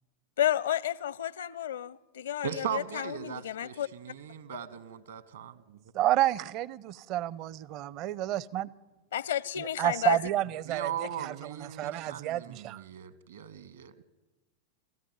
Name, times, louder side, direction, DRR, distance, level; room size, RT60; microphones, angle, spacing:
voice 1, 0.4-3.9 9.1-10.2, left 11 dB, 65° left, 0.6 m, -31 dB
voice 2, 2.4-5.8 10.7-13.1 13.3-13.9, right 8 dB, 65° right, 1.5 m, -38 dB
voice 3, 5.9-8.7 9.6-12.8, right 13 dB, 40° right, 0.6 m, -30 dB
26.5 x 14.5 x 9.4 m
figure-of-eight pair, 90°, 0 cm